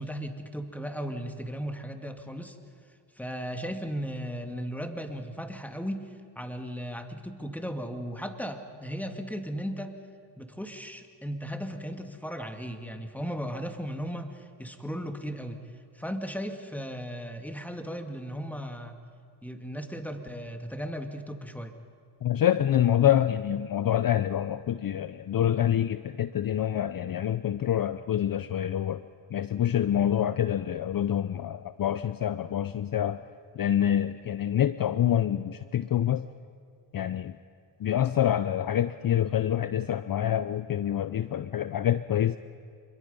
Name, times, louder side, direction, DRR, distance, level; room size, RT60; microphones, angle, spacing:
voice 1, 0.0-2.6 3.2-10.0 10.4-15.6 15.9-19.0 19.4-21.7, equal, 5° left, 6 dB, 2.1 m, -36 dB
voice 2, 22.2-29.0 29.3-33.2 33.6-36.2 36.9-37.3 37.8-42.4, left 10 dB, 45° left, 14 dB, 0.6 m, -26 dB
26.0 x 22.5 x 5.5 m, 2.2 s
cardioid pair, 65°, 48 cm